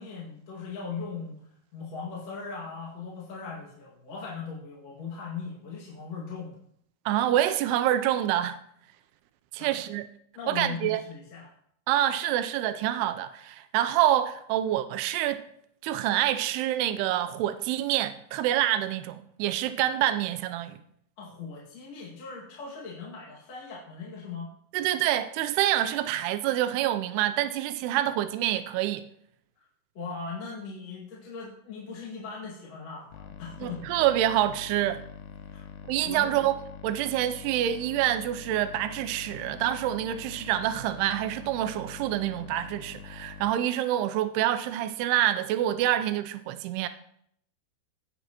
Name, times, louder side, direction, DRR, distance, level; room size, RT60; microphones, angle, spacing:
voice 1, 0.0-1.4 1.7-6.6 9.6-9.8 10.3-11.5 21.2-24.5 29.6-29.7 29.9-33.8 35.5-35.6 36.0-36.4, left 5 dB, 45° left, 2.8 m, -39 dB
voice 2, 7.1-8.6 9.5-10.0 10.5-11.0 11.9-15.4 15.8-20.8 24.7-29.0 33.6-35.0 35.9-36.6 36.8-46.9, right 12 dB, 85° right, 2.6 m, -27 dB
sound 1, 33.1-43.5, left 7 dB, 85° left, 1.8 m, -44 dB
17.0 x 7.4 x 2.9 m
omnidirectional pair, 4.7 m